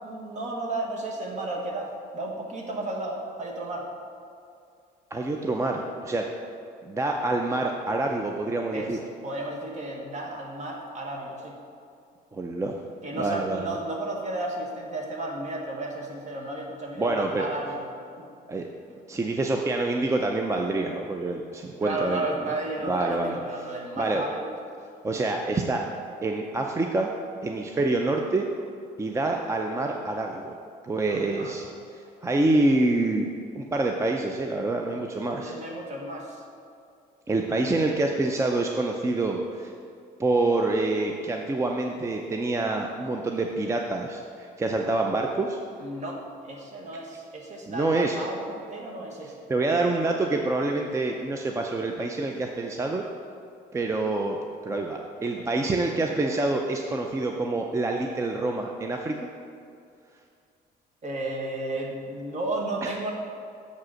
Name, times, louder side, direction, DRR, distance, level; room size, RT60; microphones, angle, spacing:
voice 1, 0.0-3.9 8.7-11.5 13.0-17.9 18.2-18.3 21.8-24.6 31.1-31.6 35.4-36.4 45.8-49.5 55.4-55.5 61.0-63.1, right 2 dB, 45° right, 0 dB, 1.4 m, -33 dB
voice 2, 5.1-6.2 6.8-9.0 12.3-12.8 13.1-13.7 17.0-17.5 18.5-18.7 19.1-22.2 22.9-23.6 24.0-24.2 25.0-25.8 26.2-27.1 27.4-28.5 29.0-30.5 30.8-33.3 33.5-35.6 37.3-39.7 40.2-45.6 47.7-48.2 49.5-53.0 53.7-54.4 54.6-59.3 62.8-62.9, right 2 dB, 15° right, 2 dB, 0.5 m, -26 dB
6.9 x 4.8 x 6.3 m, 2.4 s
cardioid pair, 110°, 17 cm